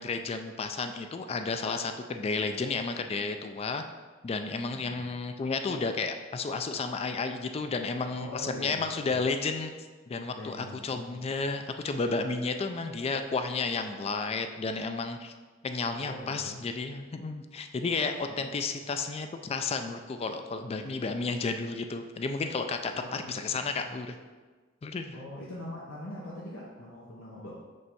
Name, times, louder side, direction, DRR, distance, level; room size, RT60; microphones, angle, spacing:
voice 1, 0.0-3.8 4.2-9.7 10.1-15.3 15.6-24.2 24.8-25.2, left 4 dB, 30° left, 7 dB, 0.3 m, -32 dB
voice 2, 8.1-9.1 10.3-11.3 16.0-16.6 18.3-18.5 22.9-24.0 25.1-27.5, left 1 dB, 85° left, -5 dB, 0.9 m, -43 dB
5.4 x 3.3 x 5.3 m, 1.4 s
head